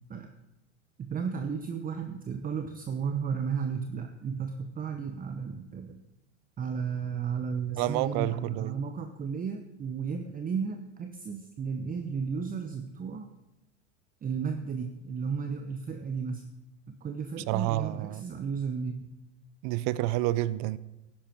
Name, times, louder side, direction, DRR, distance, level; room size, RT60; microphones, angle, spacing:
voice 1, 1.0-6.0 6.6-13.3 14.2-16.5 16.9-19.0, right 6 dB, 20° right, 6 dB, 0.9 m, -34 dB
voice 2, 7.8-8.8 17.5-18.2 19.6-20.8, right 16 dB, 45° right, 18 dB, 0.6 m, -29 dB
13.0 x 10.5 x 4.5 m, 0.96 s
hypercardioid pair, 95°, 38 cm